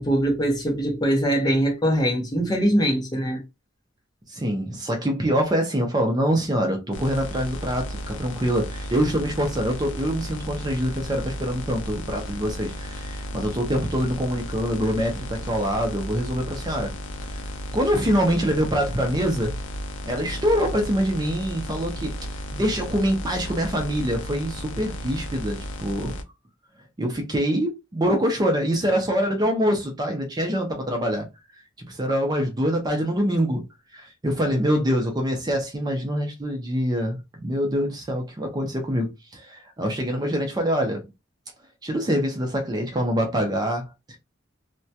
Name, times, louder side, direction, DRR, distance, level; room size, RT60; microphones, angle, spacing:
voice 1, 0.0-3.4, right 1 dB, 20° left, 0.7 m, -22 dB
voice 2, 4.3-16.9 17.3-17.4 17.7-19.5 20.1-22.1 22.5-26.1 27.0-31.3 31.8-33.6 33.9-41.0 41.8-44.2, equal, 20° right, 0.5 m, -25 dB
sound 1, 6.9-26.2, equal, 70° left, 0.4 m, -34 dB
2.2 x 2.1 x 2.7 m
head